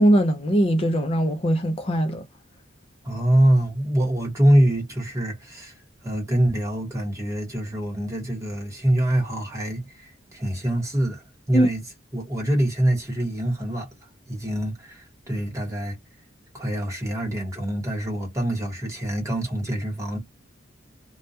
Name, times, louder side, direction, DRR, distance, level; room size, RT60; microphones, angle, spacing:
voice 1, 0.0-2.2 11.5-11.7, right 1 dB, 30° left, 0.4 m, -20 dB
voice 2, 3.0-5.8 6.0-11.8 12.1-13.9 14.3-16.0 16.5-20.2, right 1 dB, 15° right, 1.1 m, -24 dB
2.3 x 2.2 x 2.7 m
head